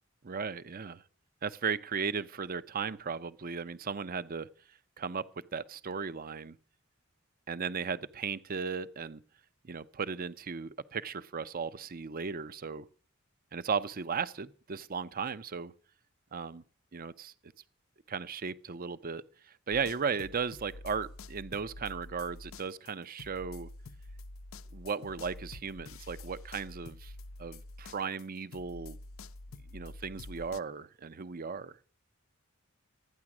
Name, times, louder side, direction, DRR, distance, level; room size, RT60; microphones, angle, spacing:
voice 1, 0.2-1.0 1.4-4.5 5.0-5.2 5.5-6.6 7.5-9.2 9.6-12.9 13.5-15.7 16.3-16.6 16.9-17.3 18.1-23.7 24.7-27.1 27.4-29.0 29.7-31.7, right 5 dB, 45° right, 0.6 m, -36 dB
sound 1, 19.7-28.3 28.5-30.6, left 2 dB, 75° left, 0.6 m, -47 dB
13.0 x 9.7 x 6.0 m
head